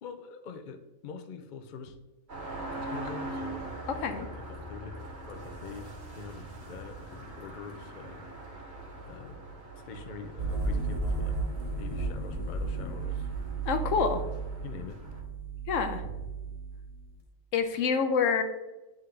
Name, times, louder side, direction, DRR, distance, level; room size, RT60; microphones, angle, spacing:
voice 1, 0.0-2.0 2.8-3.7 3.9-8.3 8.6-9.4 9.7-11.4 11.7-13.3 14.6-15.0, left 5 dB, 60° left, 9 dB, 0.5 m, -44 dB
sound 1, 2.3-15.2, right 2 dB, 55° right, 1.5 m, -43 dB
sound 2, 10.4-17.2, right 3 dB, 30° right, 1.4 m, -34 dB
voice 2, 13.7-14.2 15.7-16.1 17.5-18.4, left 5 dB, 75° left, 7 dB, 1.0 m, -27 dB
9.5 x 3.6 x 3.2 m, 1.1 s
omnidirectional pair, 1.4 m